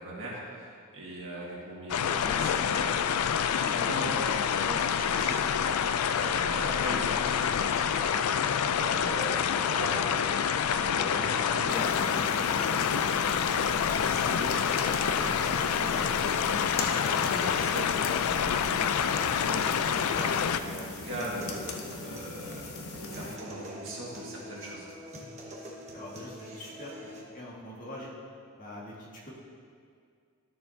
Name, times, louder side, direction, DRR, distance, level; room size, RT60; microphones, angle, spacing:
voice 1, 0.0-5.5 6.1-24.9, right 1 dB, 60° right, -5 dB, 1.8 m, -40 dB
sound 1, 1.9-20.6, left 8 dB, 85° left, 0.4 m, -27 dB
sound 2, 11.2-27.2, equal, 30° right, 1.1 m, -46 dB
sound 3, 11.7-23.4, left 3 dB, 70° left, 0.8 m, -39 dB
voice 2, 25.9-26.9 27.3-28.1 28.6-29.3, left 1 dB, 40° left, -5 dB, 1.7 m, -43 dB
12.5 x 6.6 x 2.7 m, 2.2 s
head